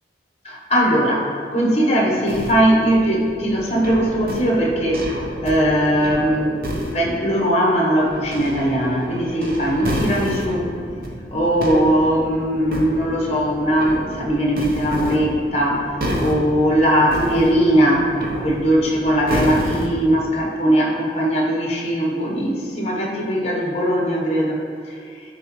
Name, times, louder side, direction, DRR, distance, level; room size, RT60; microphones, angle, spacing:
voice 1, 0.4-5.1 5.4-6.5 6.9-10.6 11.3-18.1 18.4-24.6 24.9-25.0, equal, 35° left, -1 dB, 0.9 m, -19 dB
sound 1, 2.3-6.9 8.0-20.2, equal, 55° right, 0.7 m, -30 dB
9.7 x 3.5 x 3.0 m, 2.3 s
head